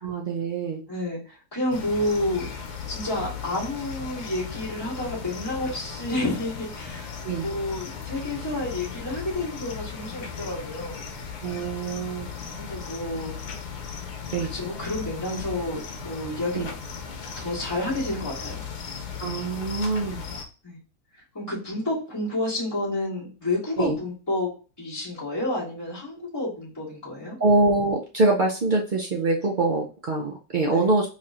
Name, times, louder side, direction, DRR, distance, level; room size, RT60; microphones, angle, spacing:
voice 1, 0.0-0.8 7.2-7.5 11.4-12.3 14.3-14.5 16.5-16.7 19.2-20.3 23.8-24.0 27.4-31.1, right 2 dB, 70° right, -1 dB, 0.4 m, -24 dB
voice 2, 0.9-2.5 2.9-7.2 7.4-11.0 12.6-13.3 14.4-16.7 17.4-18.5 20.6-20.8 21.3-24.5 24.8-27.4 30.7-30.8, left 1 dB, 15° left, -8 dB, 2.2 m, -30 dB
sound 1, 1.7-20.4, left 6 dB, 80° left, 1.3 m, -37 dB
4.2 x 3.2 x 2.5 m, 0.35 s
omnidirectional pair, 1.6 m